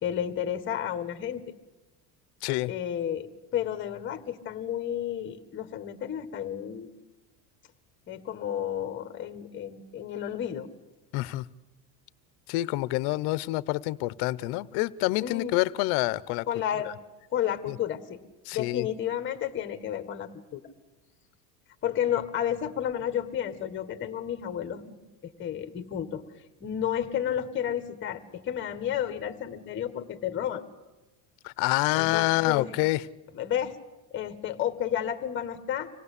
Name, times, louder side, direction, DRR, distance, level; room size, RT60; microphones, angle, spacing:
voice 1, 0.0-1.4 2.7-3.3 3.5-6.9 8.1-10.7 15.2-15.5 16.5-16.9 17.3-18.2 18.5-20.6 21.8-26.2 26.6-30.6 31.9-32.7 33.3-33.7 34.1-35.9, left 10 dB, 25° left, 10 dB, 1.5 m, -31 dB
voice 2, 2.4-2.7 11.1-11.5 12.5-16.5 16.8-16.9 17.7-17.8 18.4-18.9 31.4-33.1, left 19 dB, 55° left, 19 dB, 0.9 m, -27 dB
26.0 x 18.0 x 8.3 m, 1.1 s
cardioid pair, 150°, 46 cm